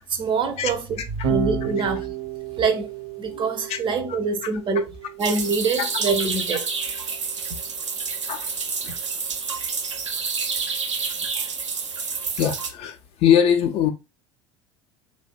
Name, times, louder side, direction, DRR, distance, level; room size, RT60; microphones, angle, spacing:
voice 1, 0.1-2.1 2.6-2.9 3.2-4.9 5.2-6.7, right 4 dB, 35° right, 0.5 m, -25 dB
Electric guitar / Bass guitar, 1.2-7.6, right 8 dB, 65° right, 0.8 m, -33 dB
voice 2, 3.3-3.8 8.3-8.5 8.8-9.0 11.0-11.1 12.4-13.9, left 9 dB, 40° left, 0.4 m, -22 dB
sound 1, 5.2-12.7, right 5 dB, 85° right, 0.4 m, -29 dB
2.6 x 2.1 x 2.3 m
figure-of-eight pair, 70°, 15 cm